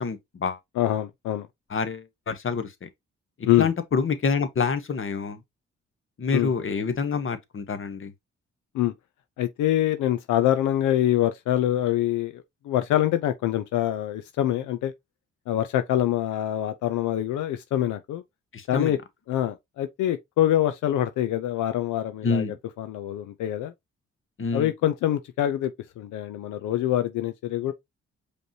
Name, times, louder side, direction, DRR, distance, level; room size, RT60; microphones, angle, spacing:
voice 1, 0.0-0.6 1.7-2.9 3.6-5.4 6.2-8.1 18.5-18.9 22.2-22.5 24.4-24.7, left 5 dB, 45° left, 1.1 m, -27 dB
voice 2, 0.8-1.5 3.4-3.7 6.3-6.5 8.7-8.9 9.4-14.9 15.5-18.2 18.7-19.0 19.3-23.7 24.5-25.7 26.0-27.7, left 12 dB, 85° left, 0.5 m, -25 dB
5.1 x 3.2 x 2.7 m
cardioid pair, 60°, 29 cm